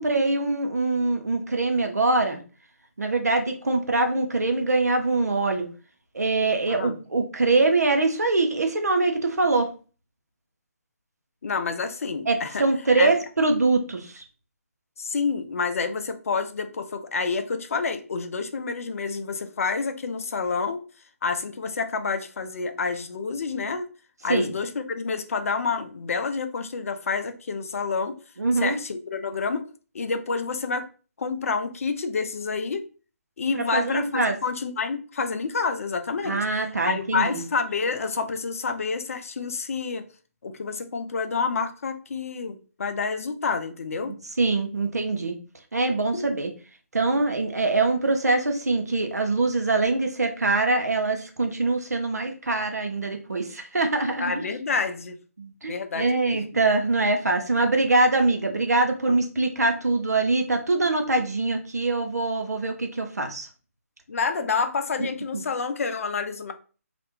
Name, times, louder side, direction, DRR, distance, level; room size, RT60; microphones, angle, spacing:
voice 1, 0.0-2.4 3.0-5.7 6.1-9.7 12.3-14.2 24.3-24.5 28.4-28.8 33.5-34.3 36.2-37.4 44.4-45.3 45.7-46.5 46.9-54.3 55.4-63.5 65.0-65.1 65.3-65.4, right 3 dB, 85° right, 5 dB, 0.7 m, -23 dB
voice 2, 6.7-7.0 11.4-12.6 13.0-13.1 15.0-20.8 21.2-23.9 24.2-28.1 28.5-29.7 29.9-30.9 31.2-32.9 33.4-36.4 36.9-40.0 40.4-44.2 46.1-46.3 54.2-55.2 55.6-56.4 59.1-59.2 64.1-66.5, left 4 dB, 60° left, 8 dB, 0.5 m, -28 dB
2.5 x 2.1 x 3.0 m, 0.37 s
figure-of-eight pair, 145°, 8 cm